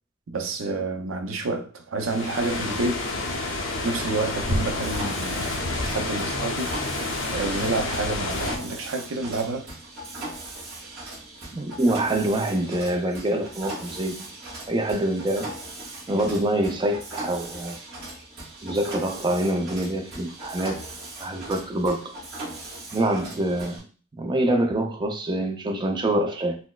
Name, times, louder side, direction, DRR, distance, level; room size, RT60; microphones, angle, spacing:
voice 1, 0.3-3.1 3.8-6.8 7.3-9.7, right 3 dB, 85° right, 0.5 m, -29 dB
sound 1, 2.0-8.6, left 2 dB, 75° left, 0.7 m, -29 dB
Mechanisms, 4.7-23.8, right 2 dB, 50° right, 1.5 m, -39 dB
voice 2, 11.5-14.3 14.7-15.5 16.1-17.8 18.6-20.8 21.2-22.1 22.9-23.8 24.2-26.6, right 1 dB, 25° right, 0.4 m, -25 dB
4.2 x 2.0 x 2.3 m
head